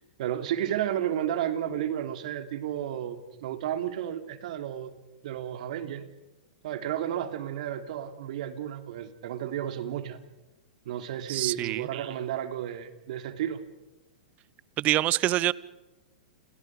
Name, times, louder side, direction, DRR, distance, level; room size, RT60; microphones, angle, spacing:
voice 1, 0.2-4.9 5.2-6.1 6.6-10.2 10.8-13.6, right 10 dB, 60° right, 3.4 m, -32 dB
voice 2, 11.3-11.9 14.8-15.5, right 15 dB, 35° right, 1.0 m, -25 dB
30.0 x 29.0 x 5.1 m
hypercardioid pair, 120°, 4 cm